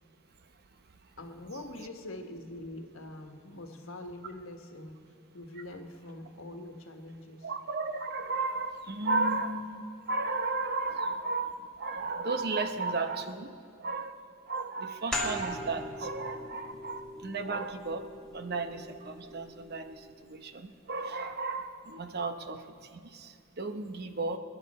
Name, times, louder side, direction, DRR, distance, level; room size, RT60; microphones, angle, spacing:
voice 1, 1.2-5.0 5.3-7.5, left 1 dB, 75° left, 4 dB, 1.4 m, -44 dB
voice 2, 7.4-13.5 13.8-14.2 14.5-18.1 18.3-22.6 22.9-24.4, right 3 dB, 50° right, 8 dB, 0.9 m, -34 dB
sound 1, 15.1-20.4, equal, 5° left, 2.6 m, -40 dB
27.5 x 10.5 x 4.3 m, 2.5 s
head